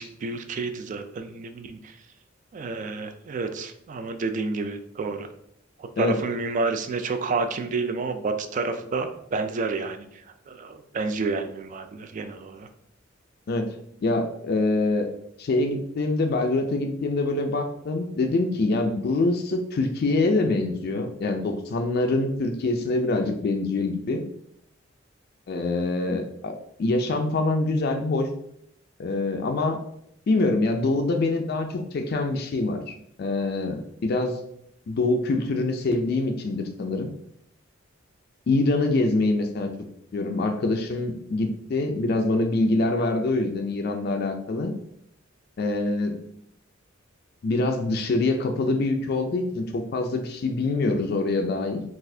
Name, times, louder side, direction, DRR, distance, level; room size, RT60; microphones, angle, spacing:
voice 1, 0.0-2.0 2.5-5.3 5.8-12.7, right 3 dB, 40° right, 7 dB, 0.3 m, -30 dB
voice 2, 14.0-15.1 15.4-24.2 25.5-28.3 29.0-29.8 30.3-34.4 34.9-37.1 38.5-39.7 40.1-44.7 45.6-46.2 47.4-51.8, left 2 dB, 50° left, 5 dB, 0.3 m, -25 dB
4.0 x 2.4 x 2.6 m, 0.72 s
head